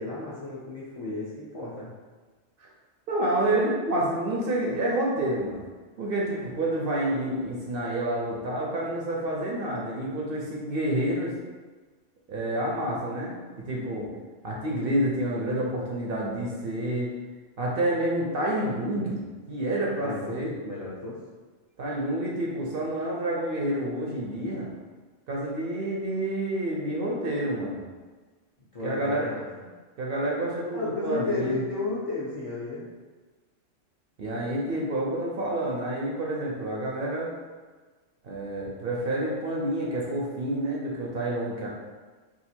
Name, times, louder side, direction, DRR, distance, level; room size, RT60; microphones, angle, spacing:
voice 1, 0.0-1.9 20.0-21.2 28.7-29.7 30.7-32.8, left 2 dB, 40° left, -7 dB, 0.5 m, -33 dB
voice 2, 3.1-5.7 6.0-11.3 12.3-14.1 14.4-17.1 17.6-20.5 21.8-24.7 25.3-27.9 28.8-29.3 30.0-31.6 34.2-37.3 38.2-41.7, right 1 dB, 60° right, -3 dB, 0.7 m, -28 dB
2.7 x 2.4 x 4.2 m, 1.4 s
omnidirectional pair, 1.2 m